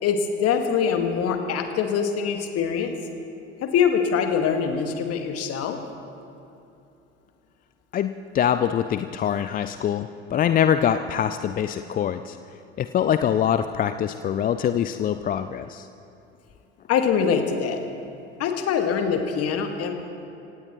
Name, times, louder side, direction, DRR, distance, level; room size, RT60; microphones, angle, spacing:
voice 1, 0.0-2.9 3.6-5.8 16.9-17.8 18.4-19.9, left 7 dB, 45° left, 5 dB, 1.9 m, -23 dB
voice 2, 7.9-12.4 12.8-15.9, left 9 dB, 25° left, 11 dB, 0.5 m, -24 dB
26.0 x 17.0 x 3.1 m, 2.7 s
figure-of-eight pair, 65°, 34 cm